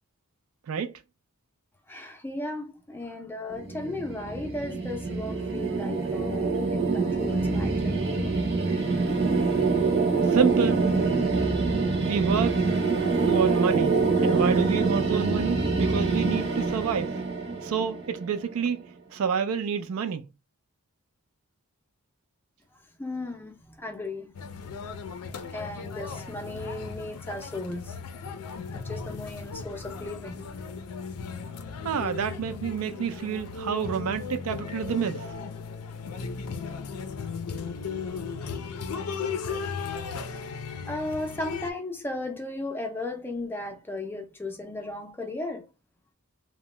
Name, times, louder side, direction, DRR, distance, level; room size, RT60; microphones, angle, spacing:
voice 1, 1.9-8.4 23.0-24.3 25.5-28.0 28.7-30.5 40.9-45.7, left 2 dB, 10° left, 0.4 m, -36 dB
sound 1, 3.5-18.5, right 4 dB, 45° right, 0.7 m, -25 dB
voice 2, 10.2-10.8 12.0-12.6 13.2-17.2 17.6-18.8 19.1-20.3 31.8-35.3, right 6 dB, 70° right, 0.4 m, -28 dB
sound 2, 24.3-41.7, left 5 dB, 85° left, 0.4 m, -36 dB
2.7 x 2.1 x 3.1 m
head